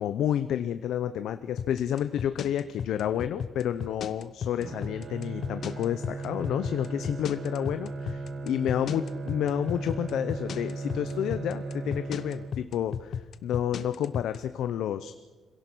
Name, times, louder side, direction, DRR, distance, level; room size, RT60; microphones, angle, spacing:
voice 1, 0.0-15.1, left 10 dB, 90° left, 10 dB, 0.7 m, -30 dB
sound 1, 1.6-14.4, left 7 dB, 50° left, 0.9 m, -34 dB
Bowed string instrument, 4.6-12.9, right 3 dB, 50° right, 1.5 m, -37 dB
26.0 x 17.0 x 6.2 m, 1.3 s
cardioid pair, 180°, 0 cm